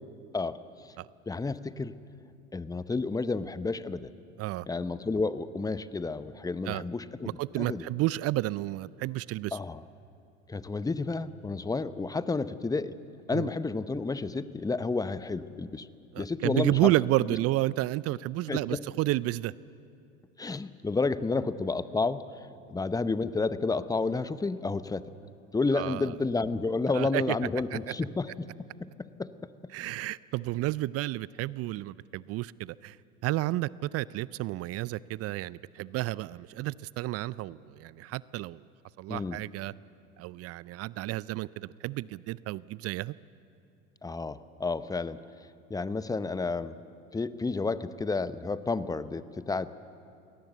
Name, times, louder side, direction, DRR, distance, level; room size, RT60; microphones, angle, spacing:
voice 1, 1.3-1.9 2.5-4.1 4.7-7.3 7.6-7.8 9.5-9.8 10.5-12.9 13.3-15.9 16.2-16.9 18.5-18.8 20.4-22.2 22.7-25.1 25.5-29.3 39.1-39.4 44.0-45.2 45.7-46.8 47.1-49.7, left 3 dB, 10° left, 14 dB, 0.7 m, -31 dB
voice 2, 7.4-9.6 13.3-13.5 16.1-19.5 25.7-26.1 26.9-27.2 27.7-27.8 29.7-33.0 33.2-38.6 39.0-39.7 40.2-43.1, right 17 dB, 40° right, 21 dB, 0.5 m, -31 dB
23.0 x 17.5 x 8.2 m, 2.5 s
hypercardioid pair, 75°, 36 cm